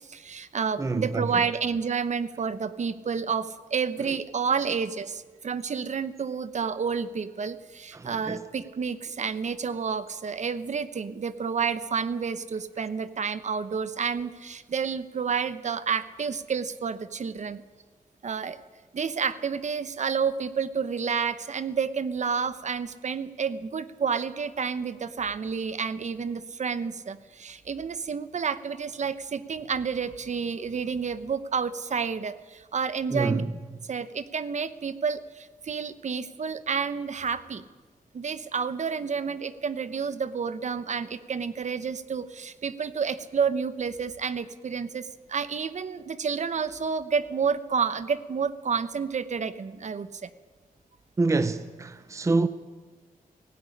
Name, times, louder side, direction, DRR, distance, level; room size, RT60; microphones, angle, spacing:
voice 1, 0.1-17.6 18.2-18.6 18.9-33.4 33.9-37.6 38.1-50.3, right 6 dB, 55° right, 1.0 m, -30 dB
voice 2, 0.8-1.4 7.9-8.4 33.1-33.5 51.2-52.5, right 3 dB, 20° right, 0.7 m, -27 dB
18.0 x 16.5 x 9.9 m
wide cardioid pair, 170°, 15 cm